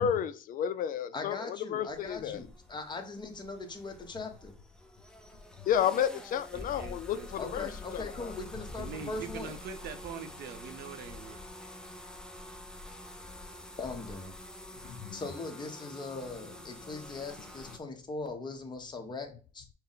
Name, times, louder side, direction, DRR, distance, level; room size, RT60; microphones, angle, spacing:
voice 1, 0.0-2.4 5.7-7.2 7.5-8.3 14.9-15.2, left 9 dB, 55° left, 12 dB, 0.4 m, -31 dB
voice 2, 1.1-4.5 7.4-9.5 13.1-13.2 13.7-14.3 15.1-19.6, left 3 dB, 25° left, 5 dB, 0.9 m, -40 dB
sound 1, 1.9-17.8, left 1 dB, 5° left, 0.6 m, -47 dB
voice 3, 6.5-7.3 8.8-11.4, right 6 dB, 70° right, 9 dB, 0.7 m, -43 dB
5.6 x 2.1 x 3.9 m, 0.38 s
cardioid pair, 110°, 17 cm